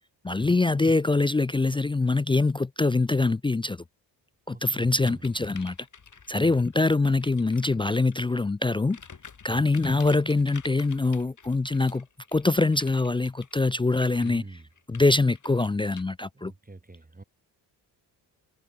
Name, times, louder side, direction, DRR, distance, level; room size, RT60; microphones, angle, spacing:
voice 1, 0.2-3.8 4.5-5.8 6.3-9.0 9.4-12.1 12.3-14.4 14.9-16.5, left 3 dB, 10° left, 0.4 m, -24 dB
voice 2, 4.5-5.3 6.3-6.6 9.5-9.7 14.2-14.7 16.3-17.2, right 2 dB, 20° right, 5.3 m, -44 dB
sound 1, 5.0-8.4 8.8-16.0, left 5 dB, 40° left, 5.8 m, -50 dB
supercardioid pair, 65°, 45 cm